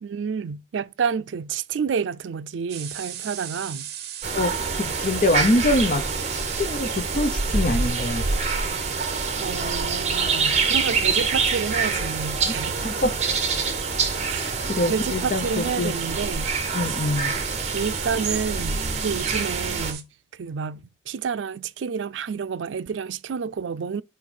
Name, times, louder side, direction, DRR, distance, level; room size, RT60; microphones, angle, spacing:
voice 1, 0.0-3.9 9.4-13.0 14.3-14.6 14.9-16.5 16.8-17.0 17.7-20.1 20.3-24.0, right 6 dB, 85° right, 0.4 m, -29 dB
sound 1, 2.7-20.0, right 10 dB, 60° right, 0.8 m, -37 dB
sound 2, 4.2-19.9, right 4 dB, 40° right, 1.2 m, -26 dB
voice 2, 4.3-6.0 6.3-8.3 12.5-12.6 12.8-13.1 14.7-15.9 16.7-17.3, left 1 dB, 45° left, 0.8 m, -24 dB
5.0 x 4.6 x 5.3 m
head